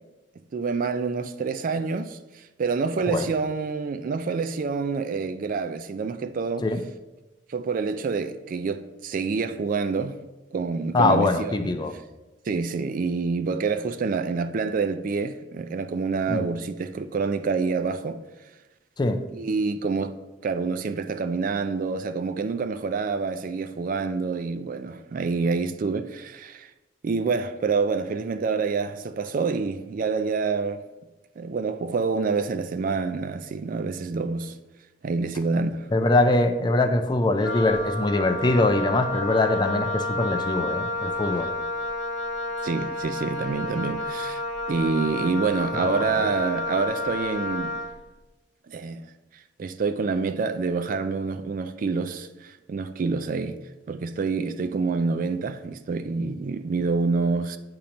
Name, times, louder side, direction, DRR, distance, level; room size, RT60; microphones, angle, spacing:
voice 1, 0.5-6.7 7.5-10.2 10.5-12.0 12.5-18.2 19.3-20.1 20.4-26.7 27.0-30.8 31.4-34.5 35.0-35.9 41.4-41.5 42.6-44.4 44.7-47.8 48.7-49.1 49.6-53.6 53.9-57.6, right 4 dB, 50° right, 0.3 m, -27 dB
voice 2, 10.9-11.9 16.3-16.5 19.0-19.2 35.9-41.5, left 2 dB, 25° left, 0.4 m, -22 dB
Wind instrument woodwind instrument, 37.4-48.0, left 2 dB, 75° left, 0.8 m, -30 dB
8.6 x 2.9 x 5.1 m
head